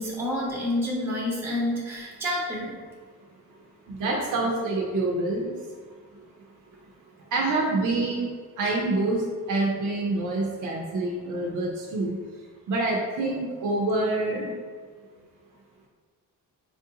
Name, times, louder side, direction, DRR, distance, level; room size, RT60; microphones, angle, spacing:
voice 1, 0.0-2.7, left 1 dB, 5° right, -4 dB, 0.7 m, -28 dB
voice 2, 3.9-5.5 7.3-8.2 8.6-12.2 12.7-14.5, right 2 dB, 60° right, -2 dB, 0.7 m, -26 dB
4.5 x 2.6 x 2.8 m, 1.5 s
cardioid pair, 130°, 34 cm